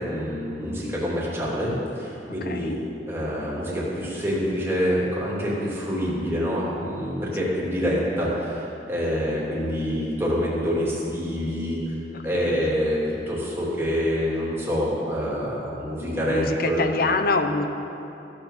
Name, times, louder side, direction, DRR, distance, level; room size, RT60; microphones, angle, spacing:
voice 1, 0.0-2.8 3.1-11.8 12.2-13.0 13.3-16.8, equal, 15° right, -6 dB, 3.1 m, -26 dB
voice 2, 2.4-2.8 7.4-7.5 12.3-12.7 16.1-17.6, left 3 dB, 60° left, 7 dB, 0.8 m, -26 dB
15.5 x 6.8 x 7.5 m, 2.9 s
head